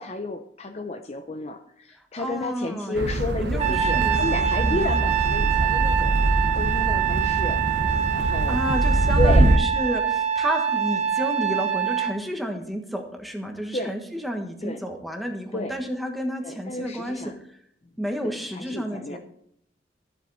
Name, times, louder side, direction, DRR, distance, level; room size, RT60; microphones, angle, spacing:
voice 1, 0.0-6.2 6.5-7.6 8.1-8.6 9.2-9.5 13.7-13.9 14.6-14.8 15.5-15.7 16.4-17.4 18.2-19.2, left 1 dB, 35° left, 6 dB, 0.6 m, -31 dB
voice 2, 1.9-3.0 3.4-4.2 4.6-4.9 8.1-17.2 17.5-17.6 18.0-19.2, equal, ahead, 3 dB, 1.4 m, -31 dB
sound 1, 3.0-9.6, right 1 dB, 75° right, 0.9 m, -23 dB
Trumpet, 3.6-12.2, right 9 dB, 40° right, 0.9 m, -25 dB
13.0 x 7.9 x 4.1 m, 0.70 s
head